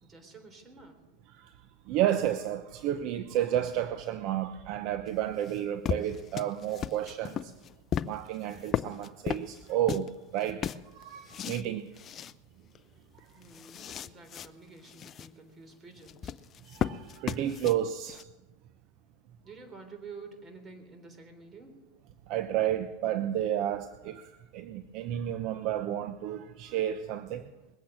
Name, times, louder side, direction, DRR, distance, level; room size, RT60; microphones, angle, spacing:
voice 1, 0.0-1.0 13.3-16.3 19.4-21.8, right 4 dB, 20° right, 3.6 m, -49 dB
voice 2, 1.9-7.5 8.0-11.9 13.1-13.3 16.6-18.2 22.3-27.5, right 11 dB, 50° right, 0.8 m, -31 dB
sound 1, 5.1-10.1 10.4-11.7 12.0-12.3 12.7-12.8 13.2-14.5 14.8-15.3 16.0-18.2, left 9 dB, 30° left, 0.5 m, -36 dB
21.0 x 8.6 x 7.5 m
supercardioid pair, 135°, 0 cm